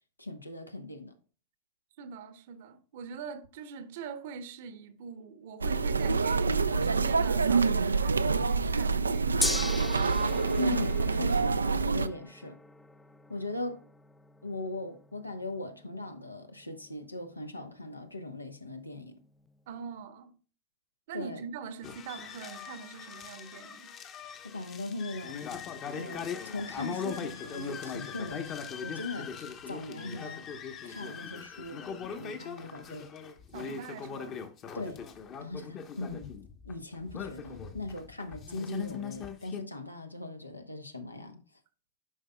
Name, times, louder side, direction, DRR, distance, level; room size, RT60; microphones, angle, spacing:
voice 1, 0.2-1.1 10.5-12.6 13.3-13.8 14.4-19.2 21.1-21.4 24.4-25.4 25.9-29.3 29.7-30.5 30.8-31.8 32.2-33.1 33.6-33.8 34.7-35.0 35.4-36.3 36.6-41.4, left 2 dB, 85° left, 0.9 m, -39 dB
voice 2, 2.0-9.5 19.7-20.3 21.1-23.9 33.5-34.4, right 6 dB, 55° right, 0.9 m, -43 dB
sound 1, 5.6-12.1, right 4 dB, 75° right, 0.3 m, -26 dB
Gong, 9.4-19.6, left 2 dB, 10° left, 0.4 m, -41 dB
sound 2, 21.8-39.6, left 6 dB, 30° left, 1.0 m, -40 dB
11.0 x 5.4 x 2.2 m
figure-of-eight pair, 90°, 0 cm